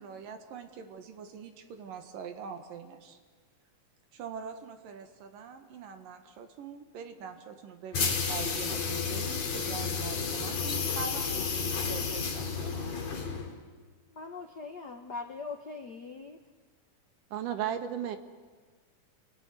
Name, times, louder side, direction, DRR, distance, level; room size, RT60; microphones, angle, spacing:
voice 1, 0.0-3.2 4.1-13.0, right 6 dB, 90° right, 6 dB, 3.4 m, -44 dB
sound 1, 7.9-13.6, left 5 dB, 55° left, 4.1 m, -31 dB
voice 2, 14.1-16.4, left 4 dB, 80° left, 3 dB, 0.9 m, -41 dB
voice 3, 17.3-18.2, right 9 dB, 75° right, 8 dB, 3.0 m, -32 dB
29.5 x 20.0 x 9.7 m, 1.5 s
omnidirectional pair, 3.8 m